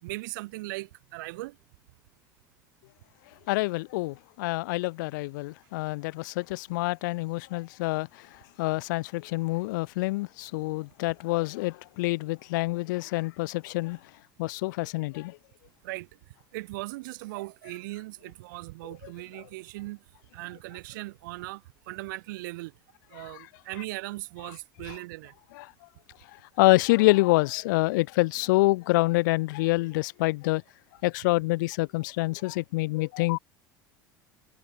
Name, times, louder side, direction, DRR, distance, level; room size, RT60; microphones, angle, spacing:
voice 1, 0.0-1.6 15.8-16.1 16.5-20.0 20.3-22.7 23.1-25.3, right 21 dB, 65° right, 3.8 m, -38 dB
voice 2, 3.5-8.3 8.6-14.0 14.4-15.4 23.2-23.3 25.6-25.7 26.6-30.6 31.0-33.4, left 22 dB, 60° left, 0.6 m, -26 dB
figure-of-eight pair, 70°, 11 cm